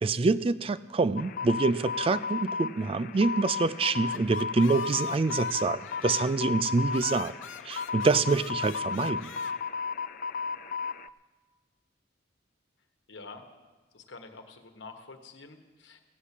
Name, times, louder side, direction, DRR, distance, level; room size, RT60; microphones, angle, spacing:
voice 1, 0.0-7.3 7.6-9.3, right 3 dB, 30° right, 17 dB, 0.3 m, -26 dB
sound 1, 1.2-11.1, left 5 dB, 45° left, 0.3 m, -34 dB
sound 2, 3.6-6.5 6.9-9.5, left 7 dB, 85° left, 0.6 m, -45 dB
voice 2, 13.1-13.4 13.9-16.0, left 3 dB, 70° left, 6 dB, 1.3 m, -47 dB
16.0 x 7.2 x 8.3 m, 1.3 s
head